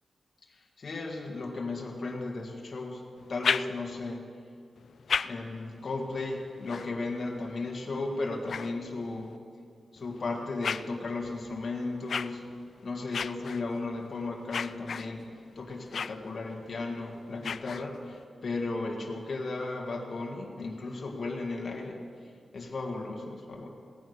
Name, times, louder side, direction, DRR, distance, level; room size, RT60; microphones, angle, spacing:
voice 1, 0.5-3.0 3.3-4.2 5.2-9.3 9.9-12.4 12.8-15.2 15.6-23.7, left 3 dB, 55° left, 0 dB, 1.9 m, -35 dB
sound 1, 3.2-4.2 4.8-9.4 10.0-18.2, left 6 dB, 75° left, 0.3 m, -38 dB
16.5 x 9.2 x 6.7 m, 2.2 s
wide cardioid pair, 95°, 0 cm